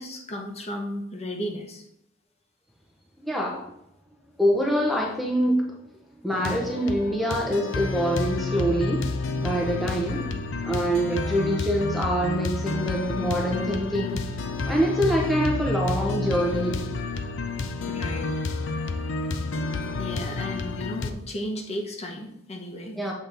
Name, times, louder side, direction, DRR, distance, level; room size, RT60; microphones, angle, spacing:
voice 1, 0.0-1.9 10.0-10.3 11.1-11.3 17.9-18.3 20.0-23.1, equal, 35° left, 3 dB, 0.8 m, -35 dB
voice 2, 3.2-3.6 4.4-5.7 6.2-9.0 9.4-10.2 10.6-14.2 14.7-16.9 23.0-23.1, equal, ahead, -2 dB, 0.6 m, -25 dB
sound 1, 6.3-21.1, left 3 dB, 70° left, 0.5 m, -30 dB
7.3 x 3.9 x 3.4 m, 0.79 s
head